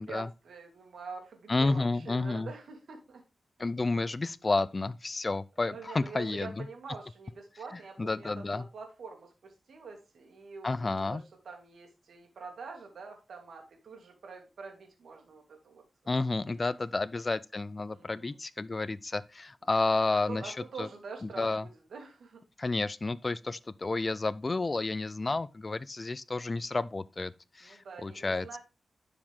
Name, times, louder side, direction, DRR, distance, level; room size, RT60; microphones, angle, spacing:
voice 1, 0.0-3.2 5.6-16.7 17.9-18.4 19.9-22.4 27.6-28.6, right 4 dB, 85° right, 2.3 m, -46 dB
voice 2, 1.5-2.5 3.6-6.7 8.0-8.6 10.6-11.2 16.1-20.5 20.8-20.9 21.4-21.6 22.6-28.5, left 3 dB, 35° left, 0.4 m, -31 dB
11.5 x 5.0 x 3.6 m
wide cardioid pair, 100°, 0 cm